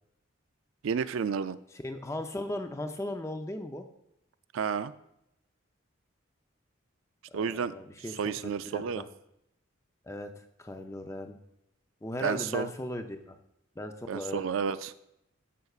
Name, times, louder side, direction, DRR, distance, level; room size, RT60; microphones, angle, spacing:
voice 1, 0.8-1.6 4.5-4.9 7.3-7.7 8.1-9.0 12.2-12.7 14.1-14.9, right 6 dB, 70° right, 13 dB, 0.4 m, -31 dB
voice 2, 1.8-3.9 7.3-8.2 8.6-9.1 10.0-11.4 12.0-13.4 13.8-14.4, left 1 dB, 15° left, 6 dB, 0.5 m, -37 dB
14.5 x 5.8 x 2.4 m, 0.81 s
head